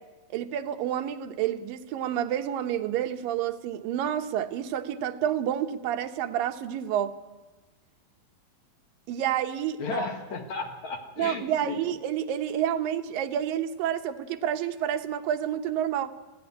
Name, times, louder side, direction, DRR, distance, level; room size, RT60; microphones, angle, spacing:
voice 1, 0.3-7.1 9.1-10.1 11.2-16.1, right 10 dB, 80° right, 7 dB, 2.6 m, -29 dB
voice 2, 9.8-11.8, left 4 dB, 60° left, 4 dB, 2.8 m, -34 dB
20.5 x 15.0 x 9.6 m, 1.2 s
omnidirectional pair, 4.1 m